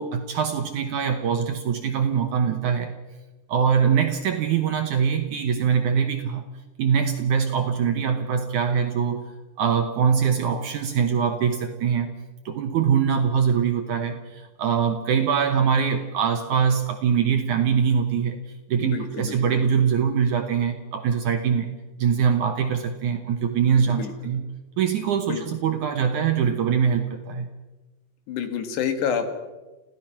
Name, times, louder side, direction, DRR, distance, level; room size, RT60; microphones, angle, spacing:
voice 1, 0.0-2.9 3.5-6.4 6.8-9.3 9.6-12.1 12.5-18.4 18.7-21.7 22.0-24.4 24.8-27.5, right 7 dB, 70° right, 6 dB, 1.9 m, -23 dB
voice 2, 18.8-19.4 23.9-24.1 25.3-25.4 28.3-29.3, left 7 dB, 90° left, 7 dB, 4.1 m, -28 dB
27.0 x 16.0 x 6.0 m, 1.1 s
omnidirectional pair, 4.7 m